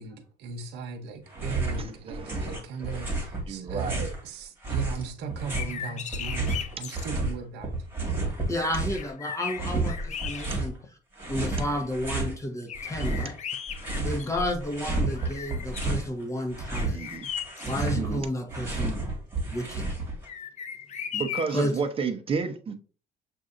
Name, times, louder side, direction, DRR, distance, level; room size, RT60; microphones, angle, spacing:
voice 1, 0.0-7.8, right 5 dB, 85° right, 0.9 m, -38 dB
sound 1, 1.3-1.8 2.1-4.2 4.6-7.3 7.6-9.1 9.5-10.7 11.2-12.3 12.7-14.3 14.6-16.1 16.4-20.3, right 3 dB, 15° right, 1.8 m, -31 dB
voice 2, 1.8-2.6 3.5-4.1 16.9-17.3 17.9-18.3 21.1-22.7, right 5 dB, 35° right, 0.8 m, -31 dB
sound 2, 5.4-7.1 8.5-8.6 8.9-10.9 11.4-11.5 12.7-14.7 15.1-16.0 16.7-17.9 20.2-21.7, left 7 dB, 45° left, 0.5 m, -37 dB
voice 3, 8.5-10.7 11.3-13.4 14.0-17.0 17.6-19.0 19.5-19.9 21.5-21.7, left 1 dB, 20° left, 1.1 m, -31 dB
7.2 x 2.7 x 2.5 m
cardioid pair, 110°, 17 cm